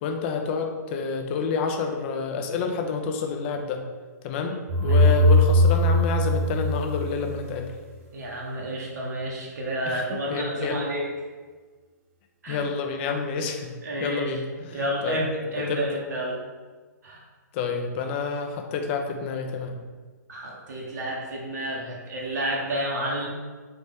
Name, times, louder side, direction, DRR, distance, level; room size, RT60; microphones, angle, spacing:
voice 1, 0.0-3.8 4.2-7.7 9.8-10.8 12.5-13.7 14.0-15.2 15.5-15.8 17.5-19.8, left 5 dB, 40° left, 4 dB, 0.5 m, -29 dB
sound 1, 4.7-7.6, left 1 dB, 40° right, 0.6 m, -20 dB
voice 2, 4.8-5.2 8.1-11.0 12.4-12.6 13.8-16.4 17.0-17.2 20.3-23.3, equal, 70° right, -3 dB, 1.0 m, -30 dB
3.9 x 3.0 x 3.5 m, 1.4 s
hypercardioid pair, 125°, 10 cm